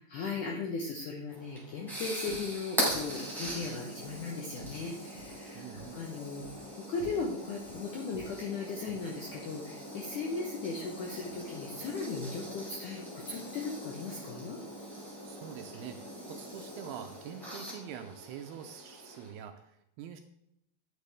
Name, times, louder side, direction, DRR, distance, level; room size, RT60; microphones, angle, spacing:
voice 1, 0.1-6.5 6.9-14.6, left 4 dB, 80° left, 1 dB, 1.8 m, -37 dB
sound 1, 1.3-19.3, equal, ahead, 3.4 m, -41 dB
sound 2, 2.3-2.6 2.9-4.9 5.2-5.4 5.8-6.1 6.4-6.7 7.0-7.8 8.1-9.5 10.5-11.4 11.7-12.1, left 1 dB, 40° left, 5.1 m, -51 dB
voice 2, 5.5-6.0 15.2-20.2, right 9 dB, 80° right, 6 dB, 2.4 m, -45 dB
9.6 x 8.5 x 3.5 m, 0.77 s
omnidirectional pair, 5.0 m